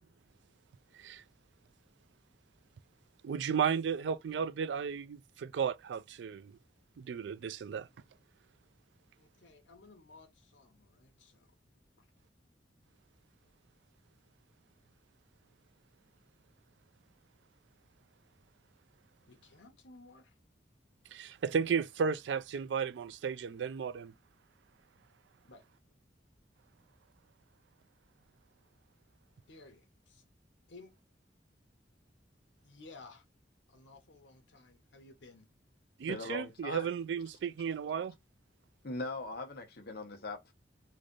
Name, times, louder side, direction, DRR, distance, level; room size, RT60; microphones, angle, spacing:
voice 1, 3.2-6.5 7.0-7.9 21.1-24.1 36.0-38.1, right 6 dB, 70° right, 0.3 m, -34 dB
voice 2, 9.2-11.5 12.0-12.1 19.3-20.3 25.5-25.6 29.5-30.2 30.7-30.9 32.6-33.2 33.7-35.5, left 3 dB, 90° left, 1.0 m, -56 dB
voice 3, 36.1-36.9 38.8-40.5, left 2 dB, 60° left, 1.0 m, -40 dB
3.2 x 2.6 x 3.7 m
head